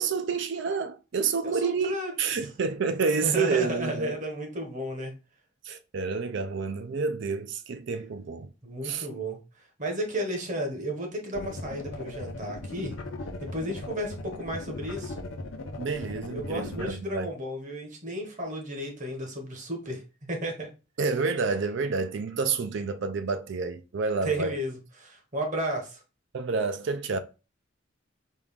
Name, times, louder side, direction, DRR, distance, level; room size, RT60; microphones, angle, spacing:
voice 1, 0.0-4.2 5.6-8.5 8.8-9.1 15.8-17.3 21.0-24.6 26.3-27.2, right 4 dB, 60° right, 0.5 m, -29 dB
voice 2, 1.4-2.1 3.2-5.1 8.6-9.4 9.8-13.0 13.4-15.2 16.3-20.7 24.2-26.0, equal, 40° right, 1.1 m, -33 dB
sound 1, 11.3-16.9, left 2 dB, 75° left, 0.7 m, -38 dB
4.4 x 2.3 x 3.5 m
head